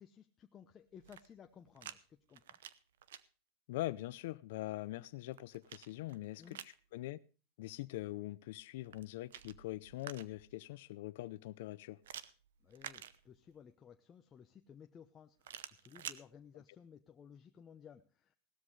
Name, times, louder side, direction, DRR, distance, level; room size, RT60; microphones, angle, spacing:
voice 1, 0.0-2.6 6.4-6.6 12.6-18.4, left 8 dB, 25° left, 0.8 m, -58 dB
sound 1, 0.9-2.0 2.3-3.2 4.9-6.8 8.8-10.5 12.0-13.6 15.4-16.2, right 10 dB, 90° right, 0.8 m, -50 dB
voice 2, 3.7-7.2 7.6-12.0, left 17 dB, 70° left, 0.6 m, -43 dB
17.5 x 13.0 x 3.3 m
supercardioid pair, 140°, 0 cm